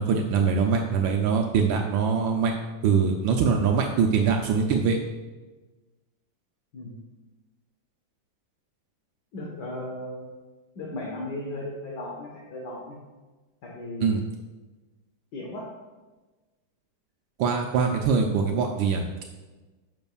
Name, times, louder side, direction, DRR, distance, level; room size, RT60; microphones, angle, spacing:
voice 1, 0.0-2.5 2.8-5.0 14.0-14.2 17.4-19.0, right 5 dB, 85° right, 2 dB, 1.4 m, -23 dB
voice 2, 9.3-10.3 10.8-13.0 13.6-14.2 15.3-15.7, left 1 dB, 60° left, -3 dB, 1.8 m, -36 dB
10.5 x 6.2 x 2.4 m, 1.2 s
omnidirectional pair, 2.1 m